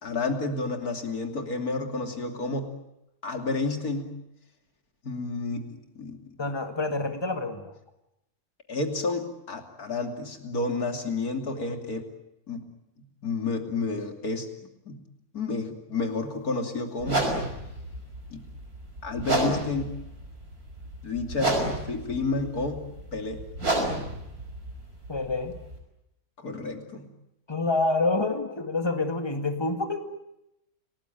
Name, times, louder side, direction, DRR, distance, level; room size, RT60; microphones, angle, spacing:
voice 1, 0.0-2.7 3.2-4.1 5.0-5.7 5.9-6.2 8.7-12.0 12.5-12.6 13.2-14.5 14.8-15.0 15.3-17.3 18.3-18.4 19.0-19.9 21.0-22.8 23.1-23.4 26.4-27.1, left 3 dB, 80° left, 4 dB, 3.4 m, -30 dB
voice 2, 6.4-7.7 25.1-25.5 27.5-30.1, left 3 dB, 15° left, 6 dB, 2.0 m, -27 dB
sound 1, 17.0-25.8, right 1 dB, 85° right, 6.1 m, -31 dB
29.5 x 19.0 x 9.2 m, 0.87 s
omnidirectional pair, 1.5 m